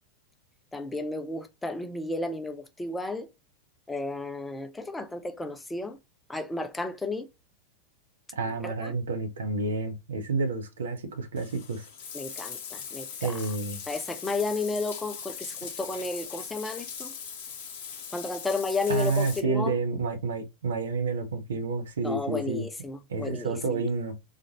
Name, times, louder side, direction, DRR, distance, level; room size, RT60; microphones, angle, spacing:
voice 1, 0.7-3.3 3.9-6.0 6.3-7.3 8.6-8.9 12.1-13.4 13.9-17.1 18.1-19.8 22.0-23.8, left 3 dB, 10° left, 0.5 m, -33 dB
voice 2, 8.4-11.9 13.2-13.8 18.9-22.7 23.1-24.2, right 3 dB, 65° right, 0.8 m, -29 dB
Bathtub (filling or washing), 11.4-19.4, left 7 dB, 50° left, 0.8 m, -40 dB
4.1 x 2.4 x 2.9 m
figure-of-eight pair, 90°, 0 cm